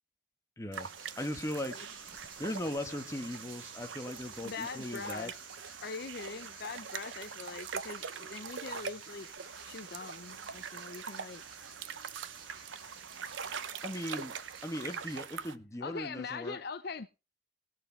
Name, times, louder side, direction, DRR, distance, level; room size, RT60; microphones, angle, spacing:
voice 1, 0.6-1.8 2.4-5.3 13.8-14.4 14.6-16.6, left 1 dB, 15° left, 1.2 m, -38 dB
sound 1, 0.7-15.2, right 4 dB, 45° right, 2.9 m, -53 dB
sound 2, 0.7-15.5, right 6 dB, 70° right, 0.7 m, -43 dB
voice 2, 4.4-5.3 5.8-9.3 9.6-11.4 15.8-17.1, left 4 dB, 50° left, 0.5 m, -42 dB
19.0 x 6.6 x 4.3 m
head